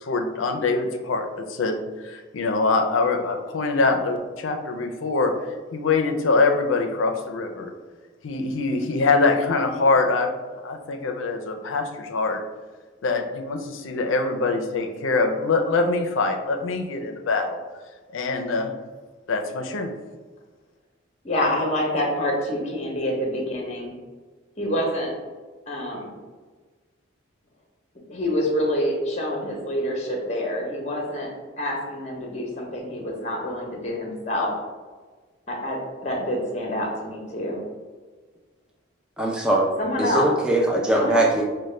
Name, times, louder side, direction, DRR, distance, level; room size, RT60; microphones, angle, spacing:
voice 1, 0.0-5.3 5.7-7.7 8.2-10.3 10.6-12.4 13.0-17.6 18.1-18.7 19.3-19.9, left 3 dB, 75° left, 5 dB, 0.5 m, -24 dB
voice 2, 21.2-23.9 24.6-25.1 25.7-26.1 28.1-31.3 31.6-34.5 35.5-37.6 39.8-40.3 40.9-41.3, left 1 dB, 35° left, 0 dB, 0.7 m, -27 dB
voice 3, 39.2-39.7 40.0-41.4, right 1 dB, 5° right, -2 dB, 0.3 m, -21 dB
5.3 x 2.1 x 3.2 m, 1.4 s
head